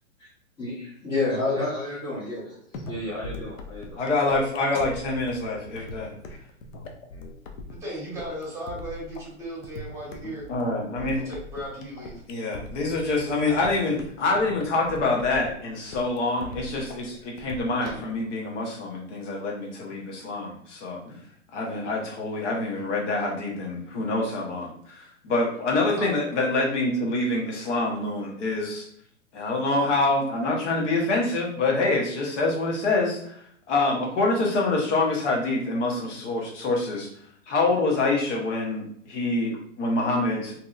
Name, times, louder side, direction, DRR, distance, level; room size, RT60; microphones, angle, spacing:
voice 1, 1.0-4.0 5.7-5.8 17.8-17.9 30.8-30.9, left 2 dB, 15° left, -11 dB, 0.8 m, -30 dB
sound 1, 2.7-18.2, left 2 dB, 75° left, 0.6 m, -41 dB
voice 2, 4.0-6.1 10.5-11.3 12.3-21.2 21.5-28.9 29.3-33.3 33.7-37.1 37.5-40.5, left 2 dB, 60° left, -1 dB, 1.1 m, -26 dB
voice 3, 7.7-10.4 11.1-12.2 26.0-26.1, right 1 dB, 5° right, -5 dB, 1.1 m, -36 dB
2.8 x 2.6 x 2.4 m, 0.65 s
hypercardioid pair, 130°, 40 cm